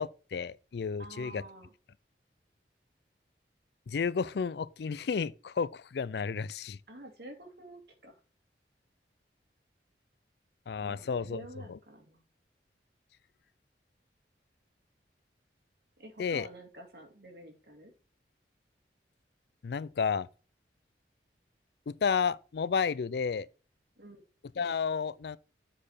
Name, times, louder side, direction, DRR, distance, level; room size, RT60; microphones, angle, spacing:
voice 1, 0.0-1.4 3.9-6.8 10.7-11.4 11.7-11.8 16.2-16.5 19.6-20.3 21.9-23.5 24.6-25.4, left 6 dB, 70° left, 0.4 m, -32 dB
voice 2, 1.0-1.7 6.9-8.2 10.8-12.2 16.0-17.9 24.0-24.2, right 1 dB, 65° right, 2.3 m, -48 dB
7.6 x 4.3 x 4.8 m
head